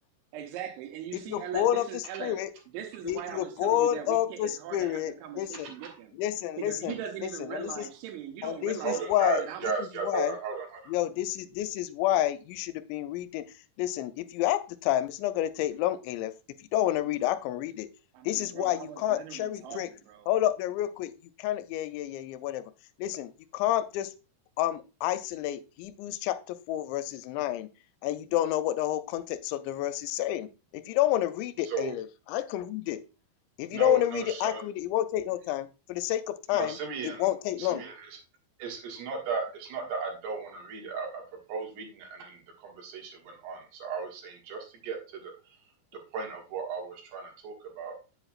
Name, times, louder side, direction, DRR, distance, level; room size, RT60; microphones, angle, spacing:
voice 1, 0.3-2.4 2.7-6.2 6.6-9.0 9.4-9.7 17.1-17.3 18.1-20.3, right 10 dB, 85° right, 3.3 m, -40 dB
voice 2, 1.1-2.5 3.0-5.7 6.2-7.0 7.2-7.9 8.4-9.7 10.0-10.3 10.9-13.5 13.8-16.3 16.6-17.9 18.3-19.9 20.3-21.1 21.4-22.7 23.0-24.1 24.6-27.7 28.0-30.5 30.7-33.0 33.6-36.8 37.0-37.8, left 13 dB, 85° left, 2.9 m, -29 dB
voice 3, 8.8-10.9 31.7-31.9 33.7-34.6 36.5-37.3 37.6-38.1 38.6-41.2 41.5-45.3 46.1-48.0, right 5 dB, 70° right, 3.5 m, -35 dB
7.9 x 7.6 x 2.3 m
omnidirectional pair, 5.1 m